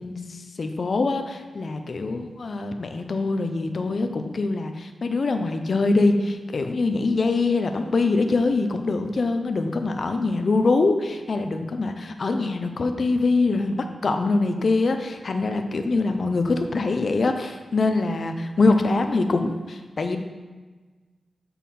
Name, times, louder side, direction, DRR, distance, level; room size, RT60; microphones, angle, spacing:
voice 1, 0.0-20.2, left 3 dB, 60° left, 6 dB, 0.6 m, -24 dB
7.3 x 5.5 x 4.2 m, 1.3 s
cardioid pair, 75°, 0 cm